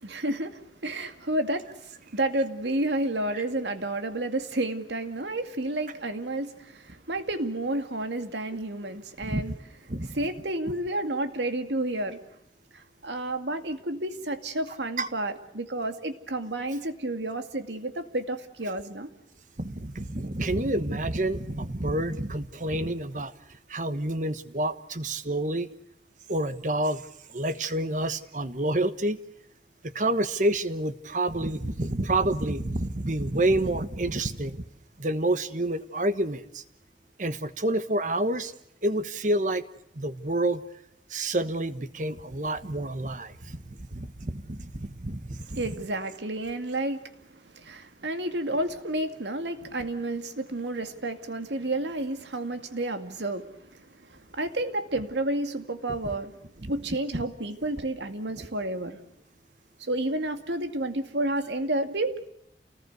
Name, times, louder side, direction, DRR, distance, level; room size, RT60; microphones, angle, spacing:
voice 1, 0.0-1.7 2.1-9.5 10.1-12.2 13.0-19.1 45.6-47.0 47.5-53.5 54.4-56.3 56.7-59.0 59.8-62.3, right 1 dB, 85° right, 2.3 m, -30 dB
voice 2, 9.9-10.3 15.0-15.1 19.6-23.3 23.7-25.7 26.3-27.0 27.3-29.2 29.9-34.6 35.0-36.6 37.2-38.5 38.8-39.6 40.0-40.6 41.1-45.8 56.6-56.7 57.1-57.2 58.4-58.5, right 1 dB, 45° right, 1.3 m, -28 dB
29.0 x 19.5 x 8.1 m
head